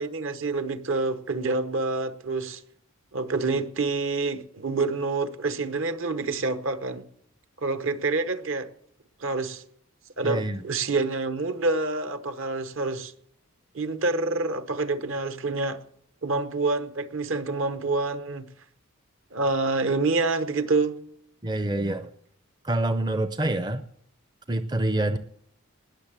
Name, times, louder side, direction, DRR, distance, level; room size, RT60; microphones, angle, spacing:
voice 1, 0.0-2.6 3.1-7.0 7.6-8.7 9.2-9.6 10.2-13.1 13.7-15.8 16.2-18.5 19.3-21.0, right 3 dB, 60° right, 1.0 m, -27 dB
voice 2, 10.2-10.6 21.4-22.1 22.6-23.8 24.5-25.2, right 1 dB, 20° right, 0.5 m, -26 dB
20.0 x 6.8 x 7.5 m
head